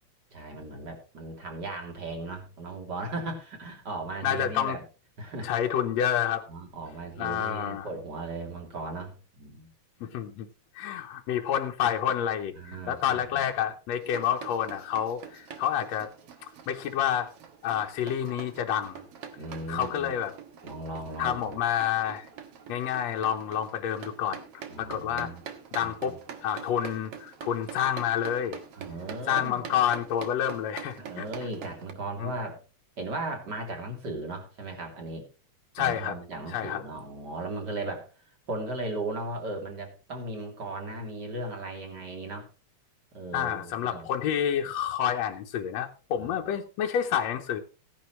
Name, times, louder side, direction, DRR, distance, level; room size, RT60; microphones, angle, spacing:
voice 1, 0.3-4.8 5.2-5.5 6.5-9.7 10.0-10.1 12.6-13.5 19.3-20.1 20.6-21.6 24.7-25.4 25.8-26.2 28.7-29.8 31.0-32.6 33.0-35.3 35.8-42.5 43.1-44.1 46.1-46.3, right 2 dB, 35° right, 3 dB, 3.3 m, -37 dB
voice 2, 4.2-4.8 5.4-6.4 7.2-7.9 10.0-10.5 10.8-16.1 16.4-17.3 17.6-19.0 19.7-20.3 21.2-22.3 22.7-24.4 24.8-25.3 25.7-26.2 26.4-28.6 29.3-31.3 32.2-32.3 35.8-36.2 36.5-36.8 43.3-47.6, left 9 dB, 70° left, 2 dB, 2.0 m, -29 dB
sound 1, 14.0-31.9, right 7 dB, 60° right, 2.1 m, -45 dB
16.5 x 10.5 x 3.1 m, 0.33 s
omnidirectional pair, 3.4 m